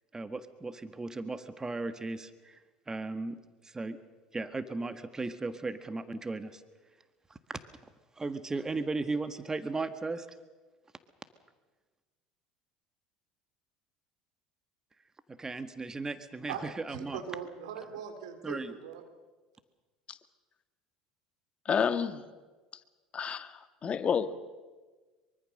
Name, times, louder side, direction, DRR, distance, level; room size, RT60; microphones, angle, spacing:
voice 1, 0.1-4.0 4.3-6.6 7.3-7.6 8.2-10.3 15.3-17.2 18.4-18.7, right 3 dB, 20° right, 10 dB, 1.6 m, -36 dB
voice 2, 16.5-19.0, right 7 dB, 80° right, 6 dB, 3.4 m, -41 dB
voice 3, 21.6-22.2 23.1-24.3, left 7 dB, 35° left, 10 dB, 1.7 m, -30 dB
24.0 x 24.0 x 6.6 m, 1.3 s
hypercardioid pair, 75°, 3 cm